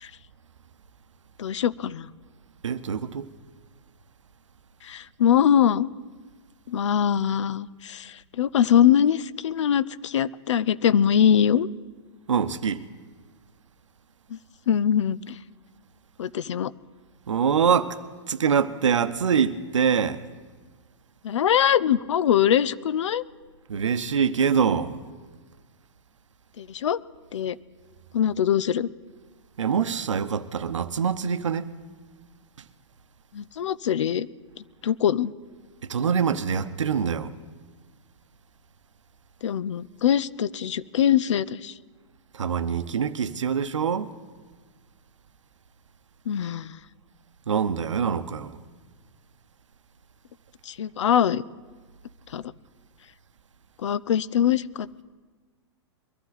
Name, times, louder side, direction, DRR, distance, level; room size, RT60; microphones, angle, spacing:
voice 1, 1.4-2.1 4.8-5.9 6.7-11.7 14.3-14.4 14.7-15.4 16.2-16.7 21.2-23.2 26.6-27.0 27.3-27.6 28.1-28.9 33.3-34.3 34.8-35.3 39.4-41.7 46.3-46.8 50.7-51.4 52.3-52.4 53.8-55.0, left 9 dB, 75° left, 0.5 m, -22 dB
voice 2, 2.6-3.3 12.3-12.8 17.3-18.0 18.3-20.2 23.7-25.0 29.6-31.7 35.8-37.3 42.3-44.1 47.5-48.6, right 7 dB, 90° right, 0.8 m, -24 dB
22.0 x 12.0 x 4.0 m
hypercardioid pair, 130°, 15 cm